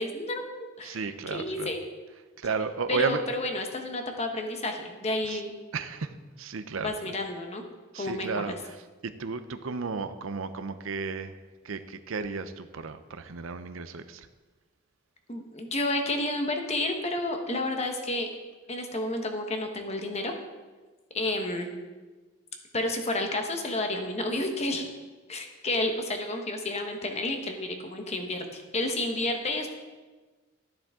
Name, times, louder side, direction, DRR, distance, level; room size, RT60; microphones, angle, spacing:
voice 1, 0.0-1.8 2.9-5.5 6.8-7.6 7.9-8.6 15.3-18.3 18.7-20.3 21.1-21.7 22.7-24.9 25.3-29.7, left 2 dB, 30° left, 4 dB, 1.2 m, -31 dB
voice 2, 0.8-1.7 2.4-3.2 5.3-5.4 5.7-6.9 7.9-8.8 9.0-11.3 11.6-14.3, right 5 dB, 75° right, 11 dB, 0.6 m, -33 dB
12.0 x 10.0 x 3.7 m, 1.3 s
head